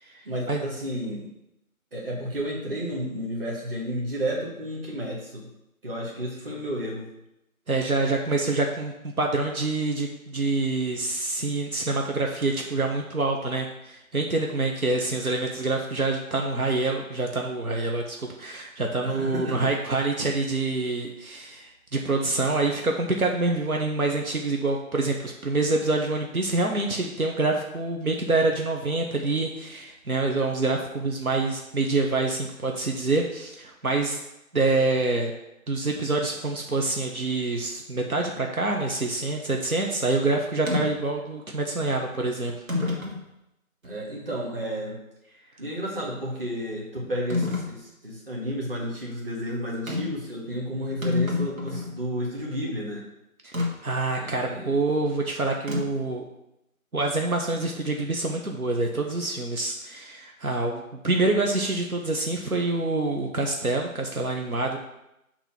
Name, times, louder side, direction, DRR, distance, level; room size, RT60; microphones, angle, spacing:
voice 1, 0.2-1.3 1.9-5.5 5.8-7.1 19.0-19.7 43.8-45.0 45.6-53.0 54.1-54.7, equal, 40° right, -3 dB, 1.8 m, -32 dB
voice 2, 7.7-34.2 34.5-35.3 35.7-42.5 53.4-53.5 53.8-56.3 56.9-64.8, right 3 dB, 85° right, 1 dB, 1.0 m, -26 dB
sound 1, 40.7-40.9 41.8-41.9 42.7-43.2 43.8-43.9 47.3-47.7 49.9-50.2 50.6-50.7 50.9-52.0 53.5-53.7 55.7-56.1, left 3 dB, 65° right, 1.9 m, -27 dB
6.8 x 3.0 x 5.8 m, 0.87 s
figure-of-eight pair, 160°, 42 cm